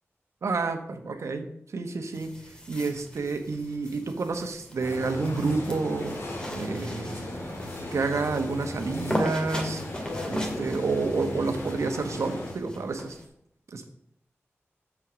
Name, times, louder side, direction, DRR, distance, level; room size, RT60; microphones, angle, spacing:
voice 1, 0.4-2.3 2.7-6.1 6.5-7.5 7.9-9.8 10.3-13.2 13.7-13.8, right 3 dB, 90° right, 6 dB, 1.1 m, -29 dB
sound 1, 2.1-13.3, equal, 20° left, 1.9 m, -38 dB
sound 2, 4.8-12.5, left 1 dB, 60° left, 1.9 m, -37 dB
7.5 x 6.0 x 6.2 m, 0.73 s
wide cardioid pair, 110°, 5 cm